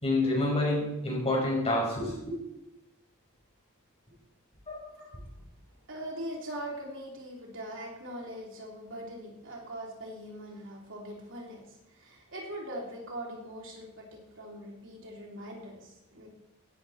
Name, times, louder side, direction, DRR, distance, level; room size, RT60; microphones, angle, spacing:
voice 1, 0.0-2.4 4.7-4.9, left 2 dB, 30° left, -2 dB, 6.1 m, -28 dB
voice 2, 5.9-16.3, right 1 dB, 60° right, -1 dB, 3.4 m, -41 dB
16.5 x 12.5 x 4.3 m, 0.92 s
head